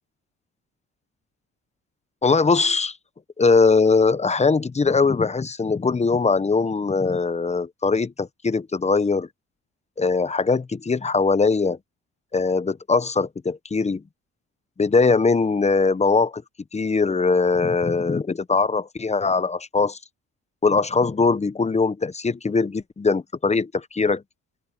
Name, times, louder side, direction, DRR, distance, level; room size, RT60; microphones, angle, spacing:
voice 1, 2.2-3.0 3.4-9.3 10.0-11.8 12.3-14.0 14.8-16.4 16.7-20.0 20.6-24.2, left 4 dB, 20° left, 0.9 m, -21 dB
open air
cardioid pair, 90°, 30 cm